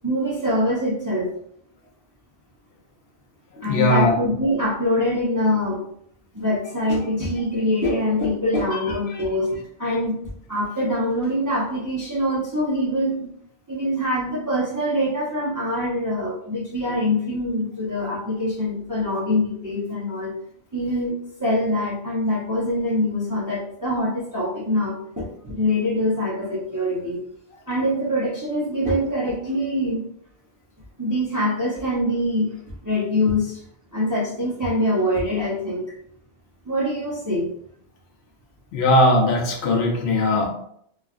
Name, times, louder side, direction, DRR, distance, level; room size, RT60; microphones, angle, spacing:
voice 1, 0.0-1.3 3.6-5.8 6.3-13.3 13.7-20.3 20.7-21.1 21.4-27.2 27.7-30.1 31.0-32.5 32.8-33.6 33.9-35.8 36.7-37.5, left 1 dB, 25° right, -6 dB, 0.5 m, -24 dB
voice 2, 3.6-4.2 8.7-9.0 38.7-40.5, left 1 dB, 75° left, 0 dB, 0.9 m, -19 dB
3.1 x 2.3 x 2.3 m, 0.68 s
omnidirectional pair, 1.1 m